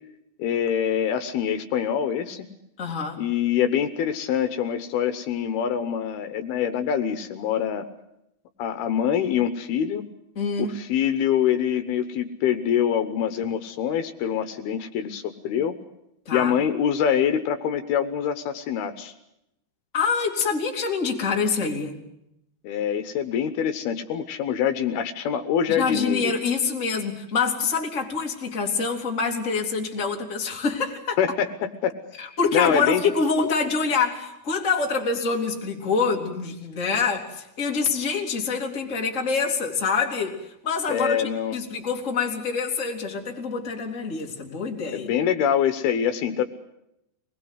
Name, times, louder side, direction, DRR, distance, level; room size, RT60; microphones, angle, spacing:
voice 1, 0.4-2.4 3.2-7.8 8.6-10.0 10.6-15.8 16.3-19.1 22.6-26.3 31.2-31.5 31.8-31.9 32.5-33.0 40.9-41.6 44.9-46.4, left 8 dB, 75° left, 9 dB, 2.9 m, -25 dB
voice 2, 2.8-3.2 10.3-10.8 16.3-16.5 19.9-22.0 25.7-31.2 32.2-45.1, left 5 dB, 20° left, 1 dB, 2.6 m, -26 dB
25.0 x 20.0 x 8.0 m, 0.82 s
omnidirectional pair, 4.7 m